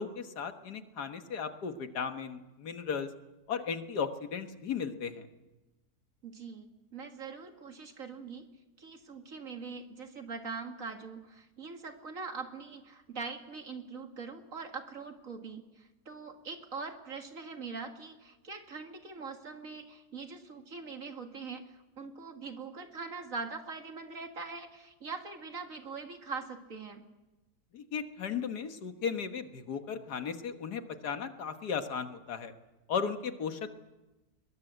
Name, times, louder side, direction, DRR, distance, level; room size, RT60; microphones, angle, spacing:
voice 1, 0.0-3.1 3.5-5.3 27.7-32.5 32.9-33.7, left 6 dB, 80° left, 8 dB, 2.0 m, -36 dB
voice 2, 6.2-27.0, right 4 dB, 55° right, 5 dB, 2.3 m, -42 dB
22.0 x 20.5 x 8.1 m, 1.1 s
omnidirectional pair, 1.7 m